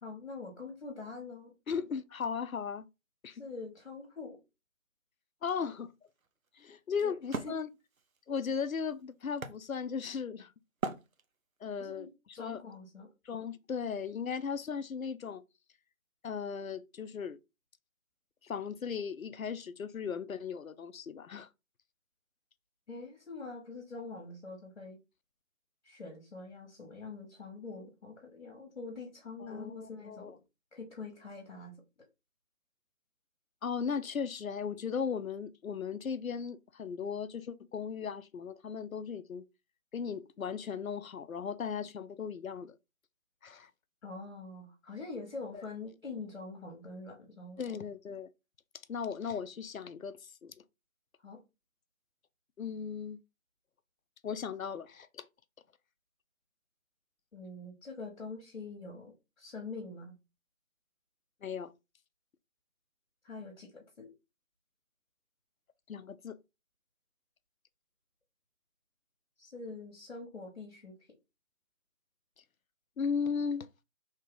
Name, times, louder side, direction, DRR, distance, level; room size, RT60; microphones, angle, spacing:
voice 1, 0.0-1.5 3.3-4.4 7.0-7.1 7.4-7.6 11.8-13.1 22.9-25.0 25.8-30.4 30.7-31.8 44.0-47.6 51.2-51.4 57.3-60.2 63.2-64.1 69.4-70.9, left 3 dB, 55° left, 1.2 m, -44 dB
voice 2, 1.7-2.9 3.2-3.4 5.4-5.9 6.6-7.7 8.3-10.5 11.6-12.6 13.3-15.4 16.2-17.4 18.4-21.5 29.5-30.3 33.6-39.4 39.9-42.7 43.4-43.7 45.5-45.6 47.6-48.3 48.9-50.5 52.6-53.2 54.2-55.2 61.4-61.7 65.9-66.4 73.0-73.7, left 6 dB, 85° left, 0.5 m, -37 dB
Wood, 5.6-10.3 10.8-11.7, right 4 dB, 80° right, 0.7 m, -41 dB
3.2 x 2.8 x 3.6 m
figure-of-eight pair, 160°, 40 cm